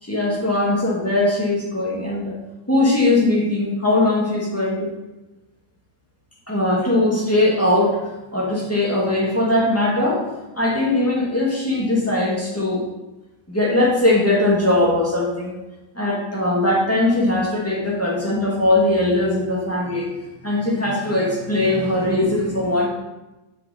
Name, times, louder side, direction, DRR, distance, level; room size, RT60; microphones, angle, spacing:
voice 1, 0.0-2.3 2.7-4.9 6.5-10.2 10.5-12.9 13.5-15.5 15.9-20.1 20.4-22.9, left 1 dB, 5° left, -4 dB, 2.2 m, -20 dB
11.0 x 6.4 x 4.4 m, 1.0 s
omnidirectional pair, 2.1 m